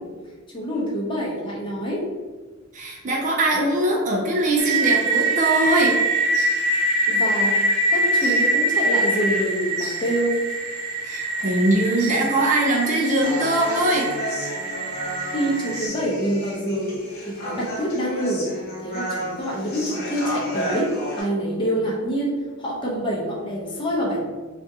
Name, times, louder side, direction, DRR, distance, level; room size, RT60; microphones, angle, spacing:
voice 1, 0.5-2.0 7.1-7.6 7.9-10.4 15.3-17.0 17.2-18.5 18.8-24.3, equal, 20° left, -4 dB, 0.7 m, -26 dB
voice 2, 2.7-6.0 11.0-14.1, right 1 dB, 35° right, -1 dB, 0.4 m, -21 dB
sound 1, 4.6-15.9, right 1 dB, 80° right, 0.6 m, -24 dB
Human voice, 13.2-21.2, equal, 45° left, 0.9 m, -32 dB
3.5 x 2.4 x 2.7 m, 1.3 s
head